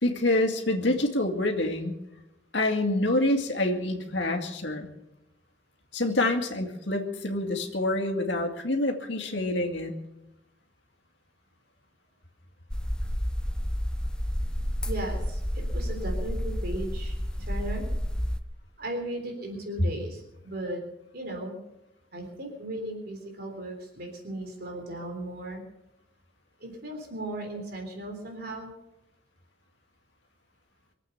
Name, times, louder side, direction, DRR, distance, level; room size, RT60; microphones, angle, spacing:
voice 1, 0.0-1.9 2.5-4.9 5.9-9.9, left 1 dB, 65° left, 3 dB, 2.3 m, -27 dB
sound 1, 12.7-18.4, equal, 5° left, 0.6 m, -30 dB
voice 2, 14.8-17.9 18.8-20.8 21.1-21.6 22.1-25.6 26.6-28.7, right 1 dB, 55° right, 2 dB, 3.6 m, -36 dB
24.5 x 8.4 x 6.8 m, 0.89 s
head